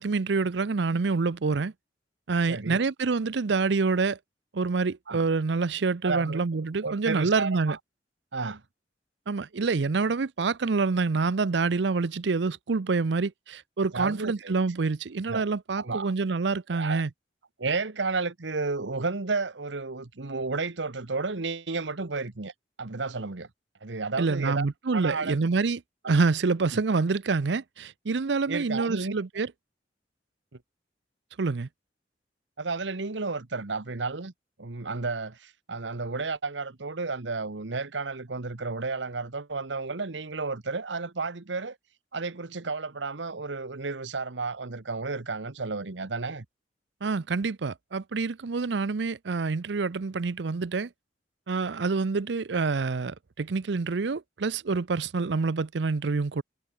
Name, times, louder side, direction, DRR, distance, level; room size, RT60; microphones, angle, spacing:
voice 1, 0.0-1.7 2.3-4.2 4.5-7.8 9.3-17.1 24.2-25.8 26.1-29.5 31.4-31.7 47.0-50.9 51.5-56.4, right 4 dB, 70° right, 0.6 m, -27 dB
voice 2, 2.5-2.8 5.1-5.2 6.0-6.4 6.8-7.8 8.3-8.6 13.9-14.5 15.3-15.5 15.7-16.1 16.7-17.0 17.6-22.5 22.8-23.5 23.8-24.7 24.9-25.4 26.0-26.1 26.7-26.8 28.5-29.1 32.6-34.3 34.6-41.8 42.1-46.4, right 3 dB, 90° right, 1.2 m, -32 dB
head